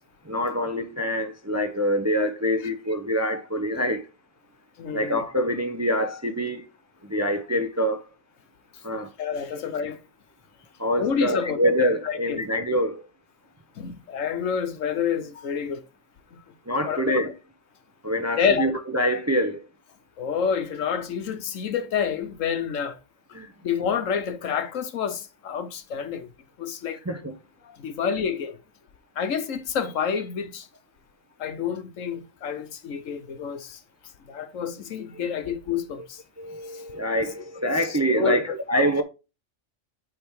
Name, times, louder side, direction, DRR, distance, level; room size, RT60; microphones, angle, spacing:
voice 1, 0.2-4.1 4.9-6.7 7.0-8.0 8.8-9.1 9.5-9.6 10.8-13.1 16.7-17.3 18.0-19.7 23.3-23.5 27.1-27.3 36.0-36.1 36.4-39.0, equal, 20° right, 0.5 m, -25 dB
voice 2, 4.8-5.2 8.7-8.8 9.2-10.0 11.0-11.6 12.0-12.4 13.8-15.8 16.3-16.4 16.8-17.3 18.4-18.6 20.2-23.0 23.6-26.3 26.6-27.0 27.6-28.6 29.2-30.7 31.4-33.8 34.3-36.2 36.7-36.8 37.8-38.5, left 7 dB, 85° left, 1.3 m, -28 dB
8.6 x 3.6 x 4.6 m
omnidirectional pair, 1.3 m